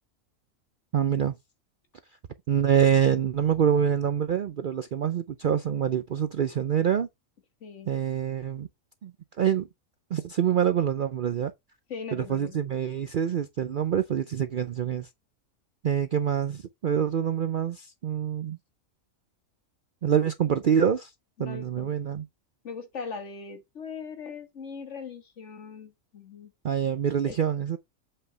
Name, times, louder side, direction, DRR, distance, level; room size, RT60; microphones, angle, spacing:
voice 1, 0.9-1.3 2.5-7.1 7.9-8.7 9.0-9.7 10.1-11.5 12.1-15.1 15.8-18.6 20.0-21.1 21.4-22.3 26.6-27.8, right 8 dB, 60° right, 0.5 m, -26 dB
voice 2, 11.9-12.6 21.4-21.9 22.6-26.5 27.2-27.4, left 5 dB, 60° left, 1.7 m, -40 dB
7.9 x 5.5 x 3.3 m
omnidirectional pair, 1.4 m